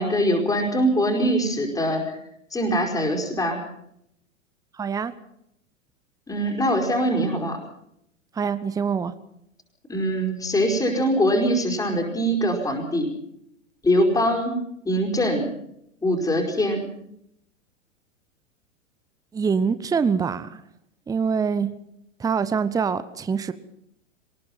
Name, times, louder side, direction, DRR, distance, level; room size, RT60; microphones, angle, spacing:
voice 1, 0.0-2.1 2.5-3.6 6.3-7.6 9.9-13.1 13.8-14.6 14.8-15.5 16.0-16.8, equal, 10° left, 1 dB, 5.0 m, -22 dB
voice 2, 4.8-5.1 8.3-9.1 19.3-20.6 21.1-21.7 22.2-23.5, right 6 dB, 10° right, 14 dB, 0.9 m, -24 dB
23.5 x 20.0 x 5.7 m, 0.75 s
figure-of-eight pair, 100°, 39 cm